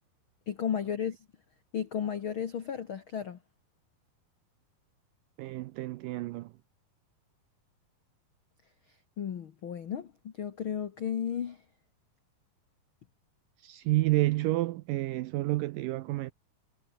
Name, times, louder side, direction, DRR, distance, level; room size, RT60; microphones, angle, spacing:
voice 1, 0.5-1.2 1.7-3.4 9.2-11.6, left 8 dB, 85° left, 1.1 m, -34 dB
voice 2, 5.4-6.5 13.6-16.3, right 18 dB, 85° right, 2.0 m, -29 dB
omnidirectional pair, 4.5 m